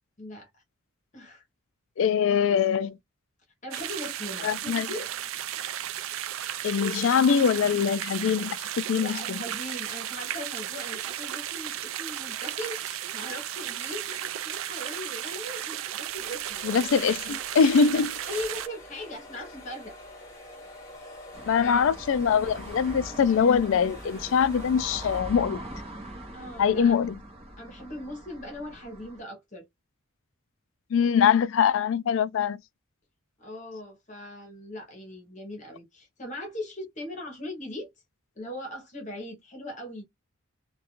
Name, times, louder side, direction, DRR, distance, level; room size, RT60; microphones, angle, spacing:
voice 1, 0.2-0.5 1.1-1.4 3.6-5.1 8.8-16.9 18.2-20.0 21.6-21.9 26.3-27.0 27.6-29.7 33.4-37.9 38.4-40.0, left 1 dB, 35° left, 0.8 m, -39 dB
voice 2, 2.0-3.0 4.4-4.9 6.6-9.1 16.6-18.1 21.5-25.6 26.6-27.2 30.9-32.6, left 6 dB, 65° left, 0.3 m, -23 dB
sound 1, 3.7-18.7, right 11 dB, 70° right, 0.3 m, -34 dB
sound 2, 16.0-25.2, left 1 dB, 15° left, 1.2 m, -47 dB
sound 3, 21.3-29.2, right 1 dB, 30° right, 0.8 m, -42 dB
2.4 x 2.2 x 2.9 m
head